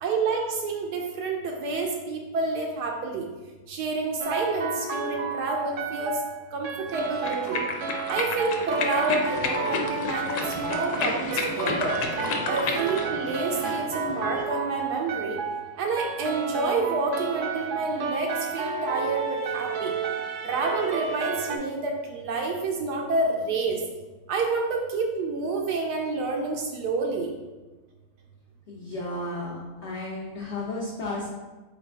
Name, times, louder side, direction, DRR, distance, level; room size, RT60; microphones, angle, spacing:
voice 1, 0.0-3.3 3.7-6.2 6.5-7.6 8.1-11.9 12.5-15.4 15.8-19.9 20.4-23.8 24.3-27.3, right 3 dB, 85° right, 1 dB, 1.2 m, -28 dB
sound 1, 4.2-21.6, right 5 dB, 70° right, 0.8 m, -32 dB
sound 2, 6.9-13.1, left 4 dB, 90° left, 1.2 m, -31 dB
sound 3, 9.2-14.4, left 1 dB, 5° left, 0.7 m, -38 dB
voice 2, 28.7-31.3, left 2 dB, 55° left, -4 dB, 0.8 m, -33 dB
4.0 x 3.9 x 3.4 m, 1.2 s
omnidirectional pair, 1.7 m